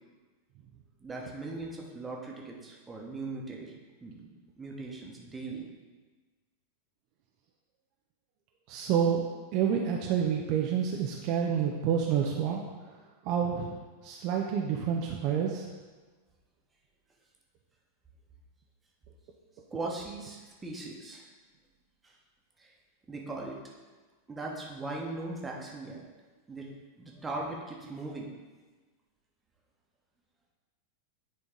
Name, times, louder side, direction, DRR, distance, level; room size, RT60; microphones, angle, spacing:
voice 1, 1.0-3.7 4.0-4.3 4.6-5.6 19.7-21.3 22.0-22.2 22.6-22.7 23.1-23.6 24.3-26.0 26.5-28.4, right 2 dB, 15° right, -1 dB, 1.2 m, -39 dB
voice 2, 8.7-9.2 9.5-12.6 13.3-13.8 14.0-15.6, right 8 dB, 40° right, 0 dB, 0.6 m, -28 dB
9.8 x 3.8 x 3.8 m, 1.3 s
figure-of-eight pair, 90°, 0 cm